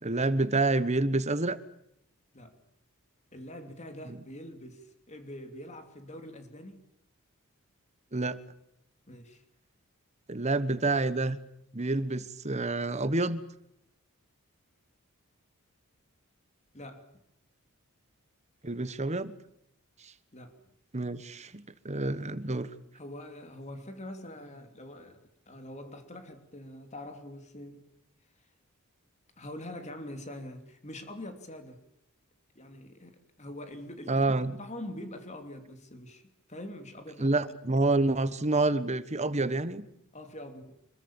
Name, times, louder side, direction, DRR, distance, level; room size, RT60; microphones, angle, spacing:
voice 1, 0.0-1.6 4.1-4.2 8.1-8.4 10.3-11.4 11.7-13.4 18.6-19.3 20.0-20.1 20.9-22.7 34.1-34.6 37.2-39.8, right 2 dB, 30° right, 1.3 m, -28 dB
voice 2, 3.3-6.8 9.1-9.4 16.7-17.1 20.3-20.6 22.9-27.9 29.4-31.8 32.5-34.3 34.6-36.2 36.5-37.3 40.1-40.7, left 1 dB, 30° left, 3.0 m, -44 dB
26.0 x 22.5 x 7.2 m
head